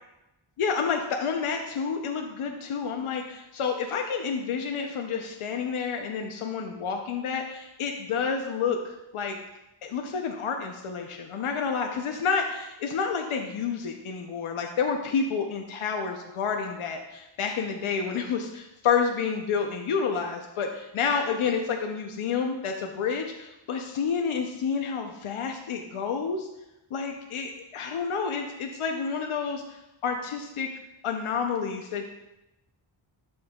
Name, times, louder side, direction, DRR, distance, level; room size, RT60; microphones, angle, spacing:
voice 1, 0.6-9.4 9.8-26.5 26.9-30.7 31.0-32.0, left 6 dB, 80° left, 3 dB, 0.8 m, -29 dB
11.5 x 5.5 x 2.3 m, 0.94 s
wide cardioid pair, 115°, 49 cm